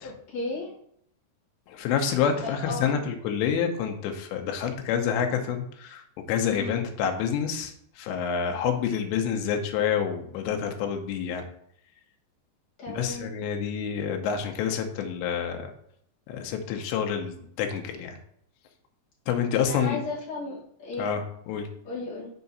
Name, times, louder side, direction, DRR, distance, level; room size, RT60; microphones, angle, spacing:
voice 1, 0.3-0.7 2.4-3.0 6.5-6.8 12.8-13.3 19.5-21.1 21.8-22.3, left 3 dB, 50° left, -6 dB, 2.6 m, -34 dB
voice 2, 1.7-6.0 6.3-11.5 12.9-15.7 16.3-18.2 19.3-20.0 21.0-21.7, left 7 dB, 85° left, 4 dB, 3.0 m, -28 dB
6.9 x 4.8 x 4.0 m, 0.68 s
omnidirectional pair, 5.1 m